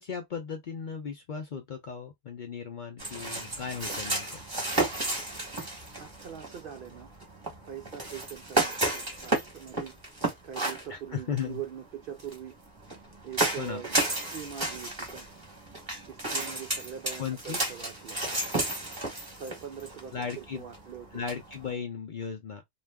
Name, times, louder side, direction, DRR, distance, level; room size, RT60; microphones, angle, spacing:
voice 1, 0.0-4.4 10.9-11.6 13.6-13.8 17.2-17.6 20.1-20.6 21.1-22.6, left 6 dB, 55° left, 0.6 m, -36 dB
sound 1, 3.0-21.7, right 2 dB, 20° right, 1.0 m, -33 dB
voice 2, 5.6-7.1 7.7-10.0 10.4-12.6 13.2-14.0 14.3-15.3 16.1-18.2 19.4-21.2 21.7-21.9, right 9 dB, 60° right, 0.5 m, -42 dB
2.4 x 2.4 x 3.3 m
omnidirectional pair, 1.3 m